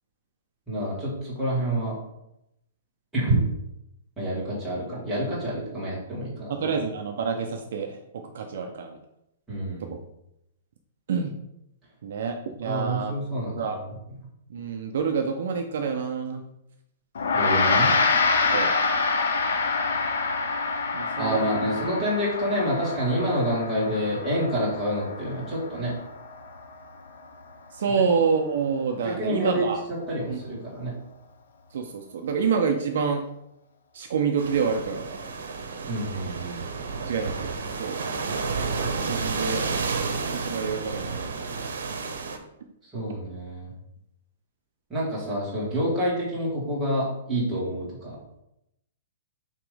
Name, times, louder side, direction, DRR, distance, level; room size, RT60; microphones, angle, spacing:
voice 1, 0.7-2.0 3.1-3.4 4.2-6.7 9.5-10.0 12.6-13.7 17.3-17.9 21.2-25.9 29.0-29.7 30.1-30.9 35.9-36.6 42.9-43.7 44.9-48.2, equal, 5° right, -9 dB, 1.9 m, -28 dB
voice 2, 6.5-8.0 8.3-9.0 11.1-11.3 12.0-13.1 13.5-13.8 14.5-16.4 18.5-18.7 20.9-21.5 27.7-29.8 30.3-30.4 31.7-33.2 33.9-35.1 37.0-37.5 37.8-38.0 39.0-39.8 40.3-41.3, right 5 dB, 50° right, 4 dB, 0.6 m, -27 dB
Gong, 17.2-26.8, left 4 dB, 70° left, 1.0 m, -26 dB
sound 1, 34.4-42.4, right 4 dB, 80° right, 1.0 m, -31 dB
7.2 x 3.0 x 5.0 m, 0.83 s
hypercardioid pair, 180°, 0 cm